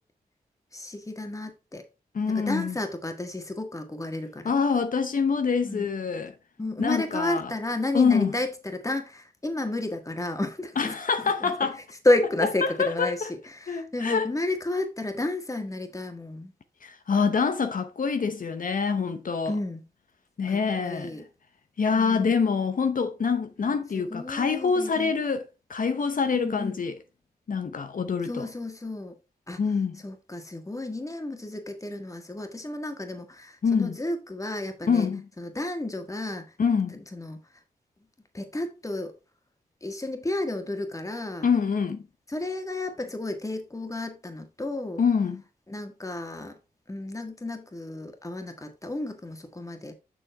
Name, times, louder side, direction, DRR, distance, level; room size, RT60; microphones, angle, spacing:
voice 1, 0.7-1.8 2.3-4.5 5.6-5.9 6.6-10.9 11.4-11.5 12.0-16.5 19.4-19.8 20.5-21.2 21.9-22.4 23.9-25.1 26.3-26.8 28.2-29.1 29.5-29.6 30.0-35.1 35.4-36.5 36.9-37.4 38.3-39.1 39.8-41.5 42.3-45.0 45.7-46.6 46.9-49.9, left 2 dB, 20° left, 1.7 m, -31 dB
voice 2, 2.1-2.8 4.4-6.3 6.8-7.5 7.9-8.3 10.8-11.8 12.6-13.3 13.7-14.3 16.8-19.5 20.4-21.2 21.8-27.0 27.5-28.5 29.6-30.0 33.6-34.0 34.9-35.3 36.6-37.0 41.4-42.0 45.0-45.4, left 5 dB, 60° left, 0.8 m, -25 dB
7.0 x 6.2 x 3.5 m
cardioid pair, 70°, 16 cm